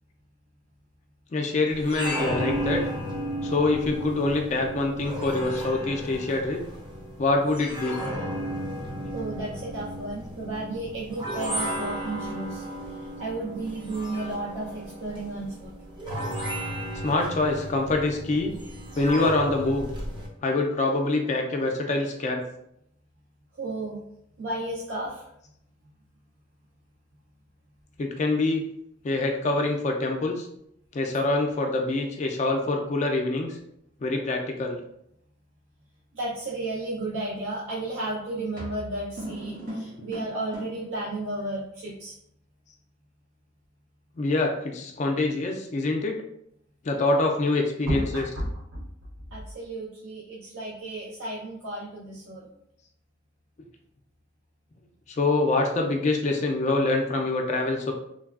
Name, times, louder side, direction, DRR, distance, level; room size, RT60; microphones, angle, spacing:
voice 1, 1.3-2.8 3.4-6.6 7.2-8.0 17.0-18.5 19.0-19.8 20.4-22.4 28.0-28.6 29.0-30.5 30.9-33.6 34.0-34.8 44.2-46.2 46.8-48.2 55.1-57.9, left 2 dB, 35° left, 2 dB, 0.3 m, -25 dB
sound 1, 1.7-20.3, equal, 25° right, 0.5 m, -34 dB
voice 2, 9.1-12.6 13.2-15.7 23.6-24.0 24.4-25.3 36.1-42.1 47.9-48.9 49.3-52.5, right 2 dB, 80° right, -6 dB, 0.6 m, -33 dB
sound 2, 37.7-37.9 38.6-40.9, equal, 60° right, 1.4 m, -37 dB
3.2 x 2.2 x 2.3 m, 0.75 s
head